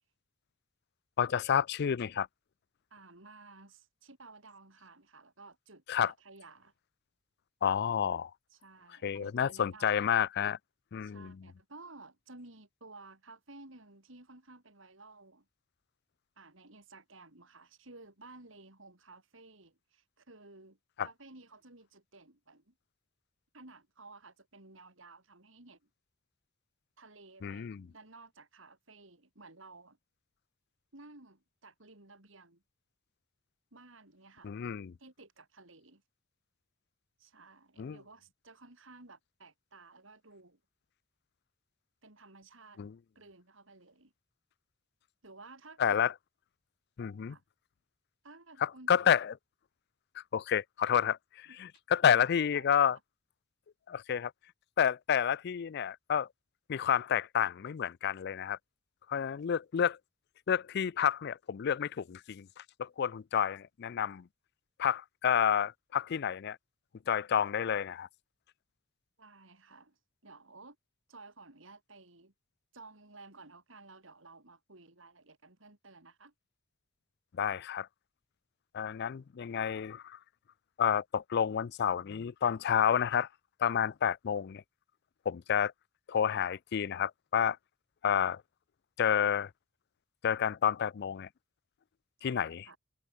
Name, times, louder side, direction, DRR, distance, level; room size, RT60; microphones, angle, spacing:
voice 1, 1.2-2.3 5.9-6.1 7.6-8.3 9.0-10.6 10.9-11.5 21.0-21.1 27.4-27.9 34.4-34.9 37.8-38.0 42.8-42.9 45.8-46.1 47.0-47.4 48.6-49.3 50.2-53.0 53.9-54.3 54.8-56.3 56.7-58.6 59.1-60.0 60.5-64.3 64.8-66.6 67.1-68.1 77.3-77.9 78.7-80.2 80.8-83.3 83.6-84.6 85.3-85.7 86.1-87.6 88.0-88.4 89.0-89.5 90.2-91.3 92.2-92.7, left 8 dB, 55° left, 0.4 m, -30 dB
voice 2, 2.9-6.7 8.5-10.2 11.0-15.5 16.4-22.7 23.5-25.9 27.0-30.0 30.9-32.6 33.7-34.5 35.0-36.0 37.2-40.6 42.0-42.8 43.2-44.1 45.2-46.1 47.3-47.4 48.2-49.0 51.5-51.6 52.0-53.0 69.2-70.8 71.1-72.3 72.7-76.3 92.2-92.8, right 3 dB, 65° right, 3.9 m, -55 dB
head